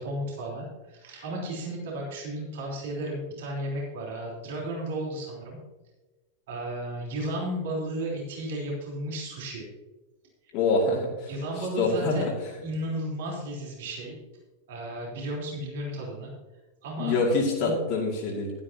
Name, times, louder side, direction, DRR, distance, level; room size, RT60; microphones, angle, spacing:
voice 1, 0.0-5.6 6.5-9.7 11.3-12.3 12.6-14.2 14.7-16.3 16.8-17.2 17.6-17.8, right 1 dB, 55° right, -2 dB, 3.6 m, -34 dB
voice 2, 10.5-11.1 11.8-12.3 17.0-18.5, left 3 dB, 45° left, -2 dB, 2.4 m, -25 dB
12.5 x 12.0 x 2.8 m, 1.2 s
figure-of-eight pair, 90°, 0 cm